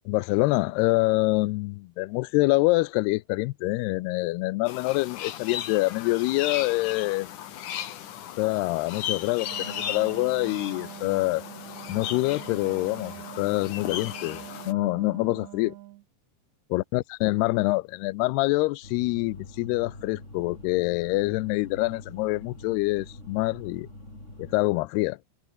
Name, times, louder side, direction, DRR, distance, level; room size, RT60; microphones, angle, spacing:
voice 1, 0.1-7.3 8.4-11.4 11.9-15.7 16.7-23.9 24.4-25.2, left 21 dB, 90° left, 2.3 m, -26 dB
sound 1, 4.7-14.7, left 11 dB, 60° left, 2.3 m, -36 dB
Wind instrument woodwind instrument, 9.4-16.1, right 17 dB, 80° right, 2.9 m, -44 dB
sound 2, 18.8-24.6, left 2 dB, 15° left, 6.6 m, -45 dB
omnidirectional pair, 5.3 m